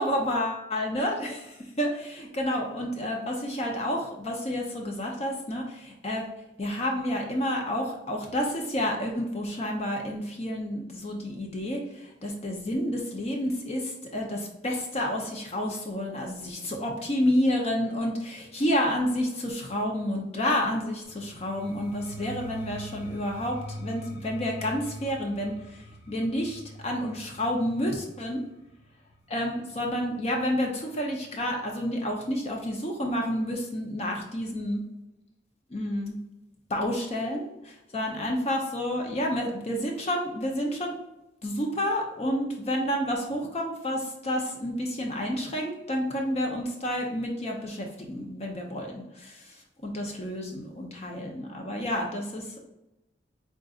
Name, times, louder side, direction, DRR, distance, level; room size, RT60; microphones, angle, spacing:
voice 1, 0.0-6.3 6.6-28.4 29.3-34.8 35.7-36.2 36.7-40.9 41.4-49.5 49.8-52.6, equal, 35° left, 1 dB, 0.6 m, -30 dB
sound 1, 21.0-30.8, equal, 60° left, 1.3 m, -44 dB
3.8 x 3.8 x 2.4 m, 0.93 s
head